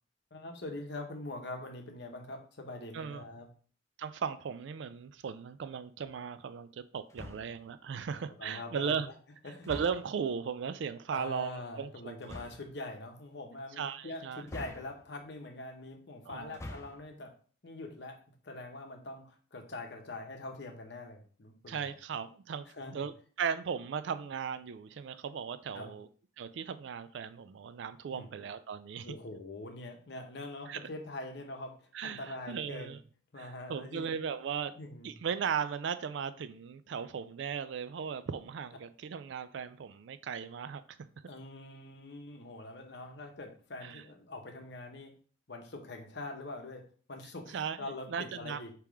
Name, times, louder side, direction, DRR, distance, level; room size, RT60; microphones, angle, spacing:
voice 1, 0.3-3.5 8.4-9.1 9.4-9.7 11.1-17.3 17.6-18.2 18.4-21.9 22.7-22.9 25.7-25.9 28.1-28.3 29.0-32.9 33.3-34.1 34.8-35.1 41.3-45.1 45.5-46.8 47.1-48.7, left 2 dB, 60° left, 0.9 m, -43 dB
voice 2, 4.0-9.1 9.7-12.4 13.8-14.5 16.3-16.6 21.7-22.7 22.9-26.1 26.4-29.1 30.7-30.8 31.9-33.0 33.4-34.7 35.0-40.8 43.8-44.0 47.5-48.6, right 7 dB, 65° right, 0.3 m, -37 dB
sound 1, 7.1-7.7 9.6-10.3 12.2-12.7 14.5-15.3 16.4-17.1, left 1 dB, 15° left, 0.4 m, -46 dB
3.5 x 2.9 x 4.8 m
head